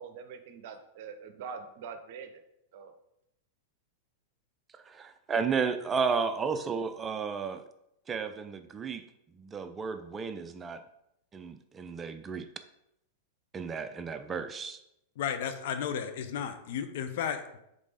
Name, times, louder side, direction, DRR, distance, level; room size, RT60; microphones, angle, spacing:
voice 1, 0.0-2.3 2.7-2.9, right 6 dB, 50° right, 8 dB, 0.7 m, -43 dB
voice 2, 4.7-7.6 8.1-9.0 9.3-10.8 11.3-12.5 13.5-14.8, right 5 dB, 20° right, 9 dB, 0.5 m, -33 dB
voice 3, 15.2-17.6, left 8 dB, 55° left, 8 dB, 0.7 m, -33 dB
5.1 x 4.2 x 5.0 m, 0.81 s
figure-of-eight pair, 95°, 0 cm